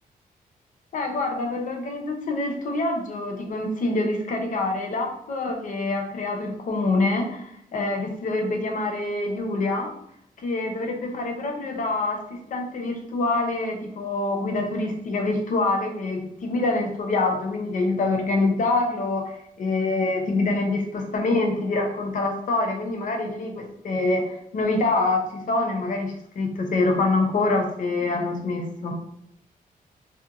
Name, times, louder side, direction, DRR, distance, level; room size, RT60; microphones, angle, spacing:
voice 1, 0.9-9.9 10.4-28.9, left 2 dB, 55° left, 3 dB, 0.5 m, -25 dB
2.8 x 2.1 x 2.4 m, 0.71 s
wide cardioid pair, 125°, 15 cm